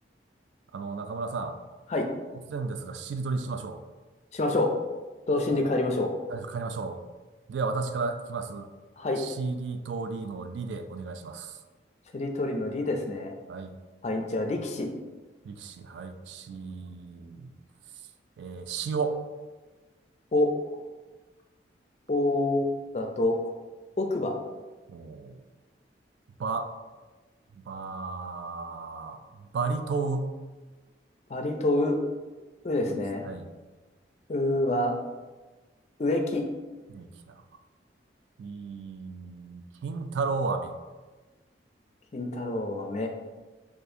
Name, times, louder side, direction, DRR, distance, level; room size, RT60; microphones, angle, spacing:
voice 1, 0.7-1.6 2.5-3.8 5.5-5.6 6.3-7.0 7.5-8.7 9.2-11.6 13.5-13.7 15.4-17.5 18.4-19.2 24.9-25.4 26.4-26.7 27.5-30.3 32.9-33.5 36.9-37.4 38.4-40.7, right 4 dB, 75° right, 8 dB, 0.3 m, -33 dB
voice 2, 4.3-4.7 5.3-6.1 9.0-9.2 12.1-13.3 14.0-14.9 20.3-20.5 22.1-23.4 24.0-24.3 31.3-32.0 32.6-33.3 34.3-34.9 36.0-36.4 42.1-43.1, left 2 dB, 35° left, 4 dB, 0.4 m, -27 dB
4.2 x 2.5 x 2.6 m, 1.2 s
head